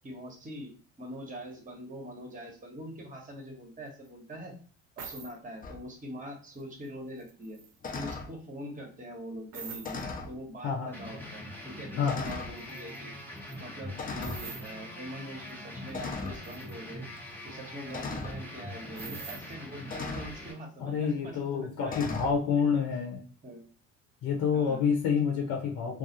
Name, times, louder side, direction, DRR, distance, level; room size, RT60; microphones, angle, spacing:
voice 1, 0.0-4.5 5.0-7.6 7.9-13.1 13.6-17.1 17.4-22.7 23.4-23.6 24.5-24.8, equal, 20° right, 1 dB, 1.0 m, -43 dB
sound 1, 4.1-4.2 5.0-5.3 6.5-6.9 7.2-8.1 9.5-10.0 12.3-12.4 12.6-13.0 13.4-13.6 14.2-14.7 15.5-15.6 15.9-16.8 19.0-19.5, right 6 dB, 45° right, 0.7 m, -44 dB
sound 2, 5.6-5.8 7.8-8.3 9.8-10.4 11.2-11.3 12.1-12.6 14.0-14.5 15.9-16.4 17.9-18.4 19.9-20.4 21.9-22.4, left 4 dB, 25° left, 0.4 m, -37 dB
voice 2, 10.6-10.9 12.0-12.3 20.8-23.2 24.2-26.0, left 6 dB, 65° left, 1 dB, 0.7 m, -28 dB
sound 3, 10.9-20.5, left 1 dB, 5° left, 0.9 m, -43 dB
2.3 x 2.0 x 2.8 m, 0.43 s
supercardioid pair, 70°, 39 cm